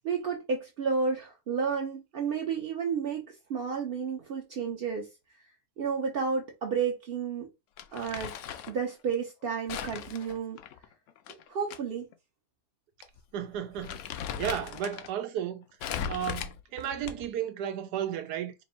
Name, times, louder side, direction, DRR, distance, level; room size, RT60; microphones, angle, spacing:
voice 1, 0.0-3.2 3.5-5.1 5.8-7.5 7.9-8.3 8.7-10.6 11.5-12.1, right 6 dB, 55° right, 0.6 m, -31 dB
Crumpling crinkling, 7.8-8.8 9.7-11.8 12.1-12.2 13.0-13.2 13.5-15.1 15.8-17.4, left 8 dB, 70° left, 0.7 m, -38 dB
voice 2, 13.3-14.0 14.3-15.6 16.1-18.5, right 9 dB, 85° right, 1.2 m, -33 dB
3.3 x 2.6 x 4.2 m
omnidirectional pair, 1.7 m